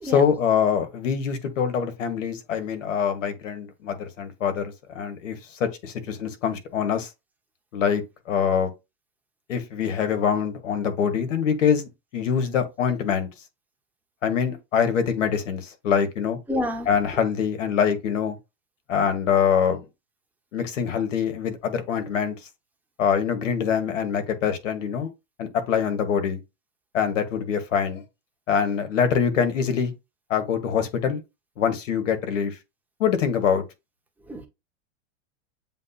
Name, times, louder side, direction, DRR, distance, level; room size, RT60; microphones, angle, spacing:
voice 1, 0.0-7.1 7.7-8.7 9.5-13.3 14.2-16.4 16.9-18.4 18.9-19.8 20.5-22.3 23.0-25.1 25.4-26.4 26.9-28.0 28.5-29.9 30.3-31.2 31.6-32.6 33.0-33.6, left 7 dB, 85° left, 1.3 m, -24 dB
voice 2, 16.5-16.9 34.3-34.5, left 1 dB, 5° right, 0.6 m, -28 dB
7.5 x 2.7 x 2.3 m
supercardioid pair, 135°, 37 cm